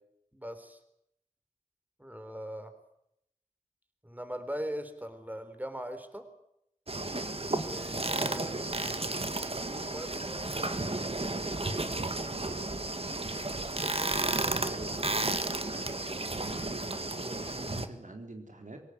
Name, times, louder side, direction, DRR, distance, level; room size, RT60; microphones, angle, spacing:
voice 1, 0.3-0.8 2.0-2.7 4.0-6.3 7.5-8.6 9.8-11.0 13.8-14.6, equal, 15° right, 9 dB, 3.8 m, -41 dB
sound 1, 6.9-17.9, right 2 dB, 50° right, 1.8 m, -33 dB
voice 2, 8.3-8.6 14.7-15.4 15.7-18.8, right 2 dB, 80° right, 3 dB, 3.9 m, -45 dB
24.0 x 17.5 x 9.6 m, 0.78 s
wide cardioid pair, 40°, 13 cm